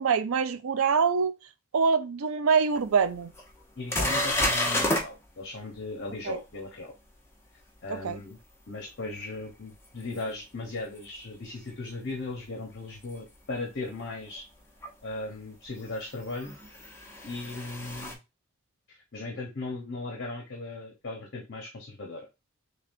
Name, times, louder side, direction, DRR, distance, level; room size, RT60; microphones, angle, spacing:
voice 1, 0.0-1.3 1.7-3.3 6.3-6.4 7.9-8.2, right 5 dB, 85° right, 0.5 m, -25 dB
sound 1, 2.7-2.8 3.4-3.5 3.9-5.1 10.2-10.3 13.0-13.1 14.8-14.9 16.3-18.1, left 1 dB, 15° left, 0.9 m, -29 dB
voice 2, 3.8-6.9 7.8-8.4 8.7-14.4 15.0-16.6 17.2-18.2 18.9-22.3, left 2 dB, 55° left, 1.0 m, -37 dB
6.7 x 2.3 x 2.6 m
head